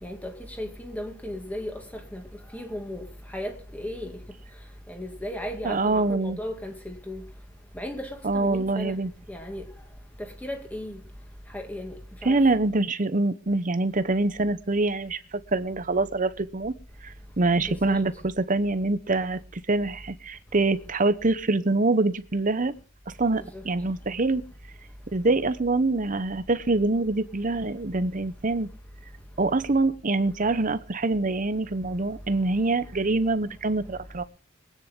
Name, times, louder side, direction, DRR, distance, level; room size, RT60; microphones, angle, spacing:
voice 1, 0.0-1.7 2.1-2.2 2.5-3.0 3.3-4.1 4.9-7.2 7.7-8.1 8.3-9.0 9.3-9.6 10.2-11.0 11.5-11.9 12.2-12.4 17.6-18.0 23.5-23.6, left 1 dB, 10° left, 2.3 m, -35 dB
voice 2, 5.6-6.4 8.2-9.1 12.2-16.7 17.0-22.7 23.1-24.4 25.1-28.7 29.4-34.2, right 2 dB, 40° right, 0.9 m, -25 dB
23.0 x 9.6 x 3.8 m
head